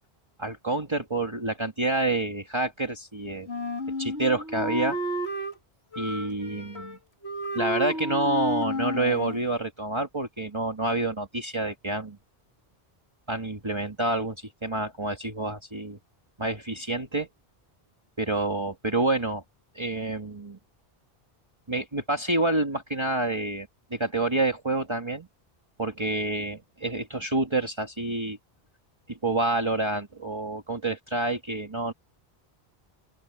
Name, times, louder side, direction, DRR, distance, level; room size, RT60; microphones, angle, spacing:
voice 1, 0.4-3.5 4.0-5.0 6.0-7.0 7.5-12.2 13.3-16.0 16.4-17.3 18.2-19.4 19.8-20.6 21.7-25.3 25.8-28.4 29.1-31.9, right 2 dB, 25° right, 2.0 m, -28 dB
Wind instrument woodwind instrument, 3.5-5.6 5.9-7.0 7.2-9.4, equal, 85° left, 3.3 m, -31 dB
open air
omnidirectional pair, 1.0 m